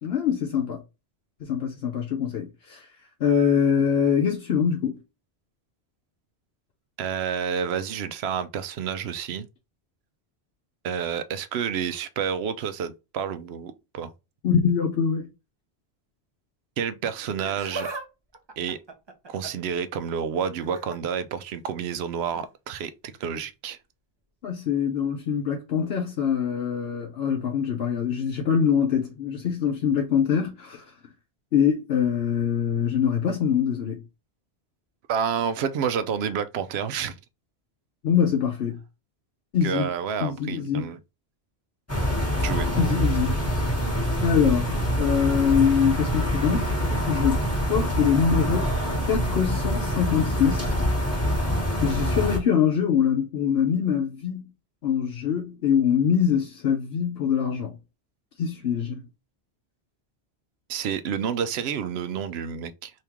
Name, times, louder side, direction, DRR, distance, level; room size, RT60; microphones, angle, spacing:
voice 1, 0.0-0.8 1.4-2.9 3.2-5.0 14.4-15.3 24.4-30.8 31.5-34.0 38.0-38.8 39.5-39.9 40.2-40.9 42.8-43.7 44.2-46.8 47.1-48.7 49.1-50.7 51.8-54.4 54.8-57.8 58.4-59.0, left 7 dB, 70° left, 0.9 m, -24 dB
voice 2, 7.0-9.5 10.8-14.1 16.8-17.9 18.6-18.8 19.3-23.8 35.1-37.1 39.6-41.0 42.4-42.7 60.7-62.9, right 7 dB, 75° right, 0.8 m, -29 dB
Laughter, 17.2-18.1 18.3-19.7 20.6-21.0 22.3-22.5 23.4-23.5, right 3 dB, 30° right, 0.6 m, -37 dB
sound 1, 41.9-52.4, equal, 15° left, 1.0 m, -25 dB
3.5 x 2.8 x 2.9 m
omnidirectional pair, 1.1 m